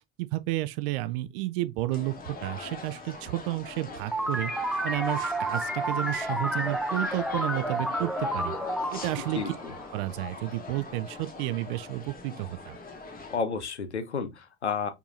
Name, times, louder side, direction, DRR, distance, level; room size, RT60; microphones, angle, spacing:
voice 1, 0.2-4.5 4.8-8.6 8.9-9.4 9.9-12.8, right 17 dB, 60° right, 0.4 m, -31 dB
sound 1, 1.9-13.4, left 3 dB, 25° left, 1.2 m, -41 dB
sound 2, 4.1-10.4, right 1 dB, ahead, 0.5 m, -31 dB
voice 2, 9.3-9.7 13.3-14.9, left 5 dB, 90° left, 0.5 m, -31 dB
4.6 x 2.7 x 2.5 m
figure-of-eight pair, 55°, 33 cm